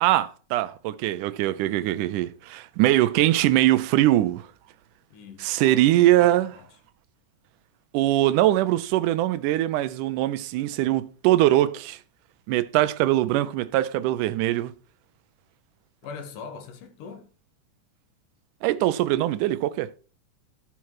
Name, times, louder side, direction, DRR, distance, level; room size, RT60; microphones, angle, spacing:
voice 1, 0.0-4.5 5.4-6.5 7.9-12.0 12.5-14.7 18.6-19.9, right 14 dB, 80° right, 2.2 m, -22 dB
voice 2, 5.1-6.7 16.0-17.3, left 5 dB, 85° left, 3.1 m, -42 dB
13.5 x 5.8 x 4.7 m
omnidirectional pair, 3.6 m